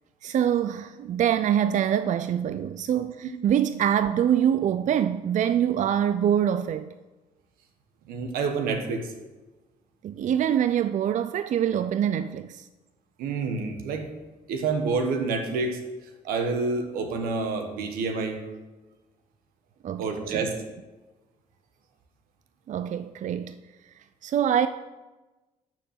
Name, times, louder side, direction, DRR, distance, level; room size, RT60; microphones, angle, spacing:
voice 1, 0.2-6.9 10.0-12.7 19.8-20.5 22.7-23.5 24.2-24.7, right 9 dB, 55° right, 0.4 m, -25 dB
voice 2, 8.1-9.1 13.2-14.1 14.5-15.8 16.2-18.4 20.0-20.6, right 4 dB, 90° right, 1.3 m, -28 dB
12.0 x 4.6 x 7.3 m
supercardioid pair, 70°, 15 cm